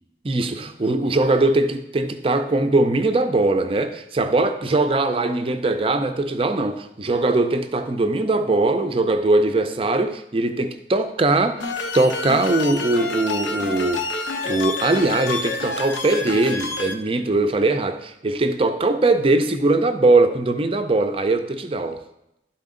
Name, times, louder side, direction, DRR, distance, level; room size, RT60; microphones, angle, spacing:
voice 1, 0.2-11.7 11.9-22.0, right 2 dB, 30° right, 0.5 m, -21 dB
sound 1, 11.6-16.9, left 3 dB, 85° left, 0.8 m, -28 dB
11.5 x 4.3 x 3.8 m
head